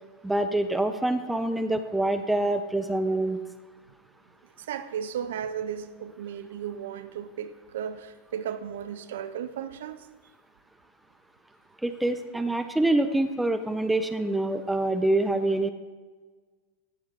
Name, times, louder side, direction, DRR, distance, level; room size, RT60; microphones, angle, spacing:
voice 1, 0.2-3.4 11.8-15.7, right 2 dB, 5° right, 9 dB, 0.5 m, -26 dB
voice 2, 4.6-10.1, right 8 dB, 55° right, 11 dB, 0.5 m, -35 dB
14.0 x 6.4 x 3.6 m, 1.4 s
figure-of-eight pair, 90°, 0 cm